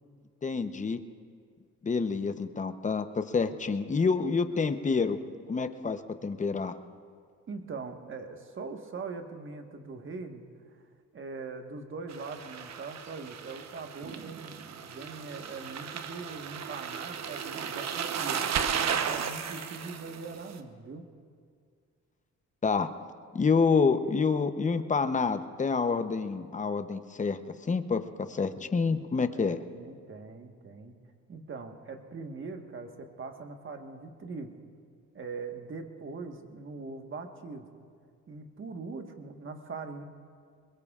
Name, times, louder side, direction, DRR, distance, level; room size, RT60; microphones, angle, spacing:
voice 1, 0.4-1.0 1.8-5.2 5.5-6.8 22.6-22.9 23.3-28.0 28.3-29.6, left 5 dB, 25° left, 10 dB, 0.8 m, -28 dB
voice 2, 7.5-10.4 11.1-21.1 29.3-31.0 31.3-34.5 35.1-37.7 38.3-40.0, right 4 dB, 40° right, 5 dB, 1.5 m, -42 dB
sound 1, 12.1-20.6, right 7 dB, 60° right, 1.0 m, -35 dB
23.0 x 21.5 x 2.5 m, 2.1 s
cardioid pair, 90°, 30 cm